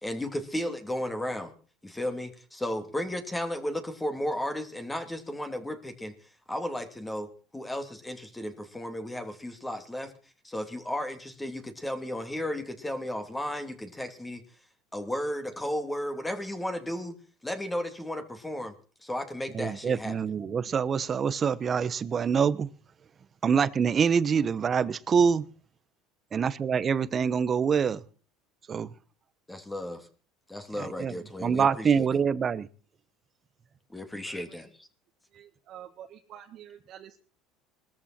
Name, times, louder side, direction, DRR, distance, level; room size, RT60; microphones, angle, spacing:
voice 1, 0.0-1.5 1.8-6.1 6.5-10.1 10.4-14.4 14.9-17.2 17.4-18.7 19.0-20.2 29.5-30.1 30.5-32.1 33.9-34.9, left 1 dB, 10° left, 2.8 m, -34 dB
voice 2, 19.5-22.7 23.4-25.4 26.3-28.0 28.7-28.9 30.8-31.1 31.4-32.7, right 6 dB, 30° right, 1.0 m, -25 dB
voice 3, 34.3-34.6 35.3-37.2, right 10 dB, 50° right, 1.7 m, -48 dB
21.0 x 13.5 x 4.4 m
supercardioid pair, 105°, 0 cm